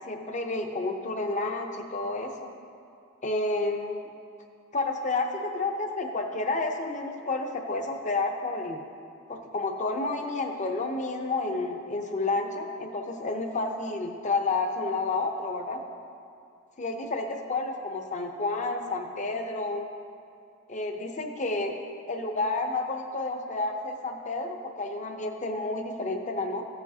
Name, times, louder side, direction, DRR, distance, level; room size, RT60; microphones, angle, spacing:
voice 1, 0.1-2.5 3.2-4.0 4.7-8.8 9.3-15.8 16.8-19.9 20.7-21.7 22.1-26.6, left 3 dB, 40° left, 3 dB, 0.7 m, -30 dB
14.5 x 7.1 x 2.8 m, 2.5 s
head